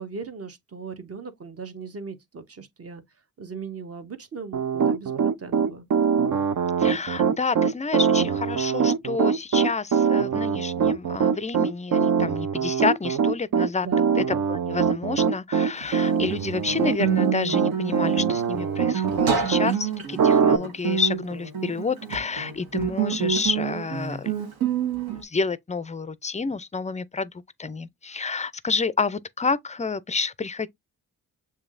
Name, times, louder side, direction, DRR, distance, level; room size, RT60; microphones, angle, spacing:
voice 1, 0.0-3.0 3.4-5.9 13.8-14.2, right 4 dB, 40° right, 1.0 m, -38 dB
Piano, 4.5-19.7 20.2-20.6, right 6 dB, 55° right, 0.6 m, -22 dB
voice 2, 6.8-13.9 14.1-24.3 25.1-30.7, left 4 dB, 20° left, 0.4 m, -29 dB
Guitar, 15.8-25.2, right 7 dB, 75° right, 1.4 m, -28 dB
6.9 x 2.7 x 2.5 m
cardioid pair, 65°, 37 cm